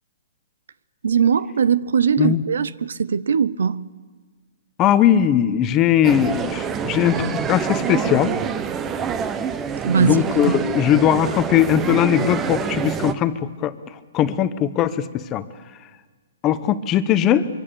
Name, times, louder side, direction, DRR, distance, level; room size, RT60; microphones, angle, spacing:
voice 1, 1.0-3.8 9.8-10.2 10.4-10.6, right 7 dB, 80° right, 0.7 m, -20 dB
voice 2, 4.8-8.3 10.0-13.8 14.1-15.4 16.4-17.5, left 10 dB, 20° left, 0.9 m, -19 dB
sound 1, 6.0-13.1, right 7 dB, 15° right, 0.9 m, -26 dB
24.5 x 23.5 x 6.9 m
hypercardioid pair, 155°, 0 cm